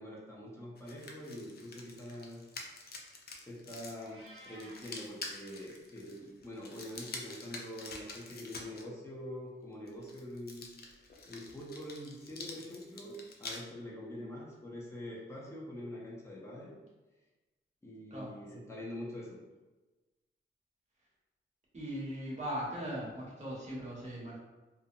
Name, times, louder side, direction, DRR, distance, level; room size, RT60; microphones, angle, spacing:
voice 1, 0.0-2.5 3.4-10.7 11.2-16.7 17.8-19.4, left 1 dB, 15° left, -5 dB, 0.7 m, -45 dB
sound 1, 0.8-8.8 9.9-13.6, left 3 dB, 50° left, 0.4 m, -47 dB
Meow, 4.0-4.9, right 1 dB, 85° right, 0.6 m, -53 dB
voice 2, 21.7-24.4, equal, 35° right, -6 dB, 0.9 m, -39 dB
2.6 x 2.1 x 2.6 m, 1.2 s
wide cardioid pair, 105°, 21 cm